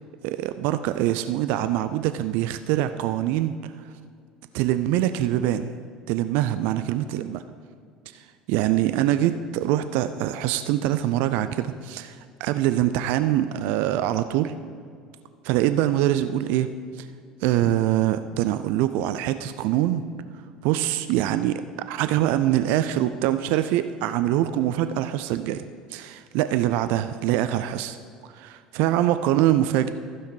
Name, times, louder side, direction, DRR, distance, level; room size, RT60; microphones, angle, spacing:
voice 1, 0.2-3.7 4.5-5.7 6.1-7.4 8.5-14.5 15.4-16.7 17.0-17.1 17.4-20.1 20.6-21.6 21.9-28.0 28.4-29.9, right 13 dB, 55° right, 11 dB, 0.4 m, -24 dB
15.0 x 5.7 x 4.7 m, 2.2 s
figure-of-eight pair, 65°, 4 cm